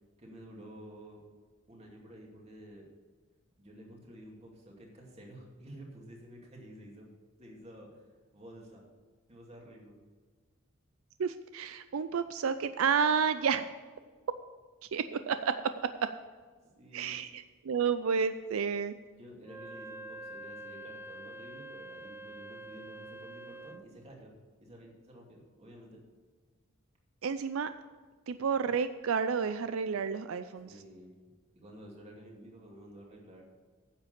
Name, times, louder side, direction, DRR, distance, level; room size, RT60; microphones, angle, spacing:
voice 1, 0.2-1.2 1.7-2.9 3.6-7.1 7.4-8.0 8.3-8.8 9.3-10.0 16.8-17.2 19.2-24.3 24.6-26.0 30.6-31.1 31.6-33.4, equal, 30° right, -1 dB, 2.5 m, -51 dB
voice 2, 11.2-13.7 14.9-15.5 16.9-18.9 27.2-27.7 28.3-30.7, right 6 dB, 80° right, 11 dB, 0.4 m, -30 dB
Wind instrument woodwind instrument, 19.4-23.9, right 1 dB, 10° right, 0.3 m, -46 dB
10.0 x 7.5 x 6.7 m, 1.5 s
head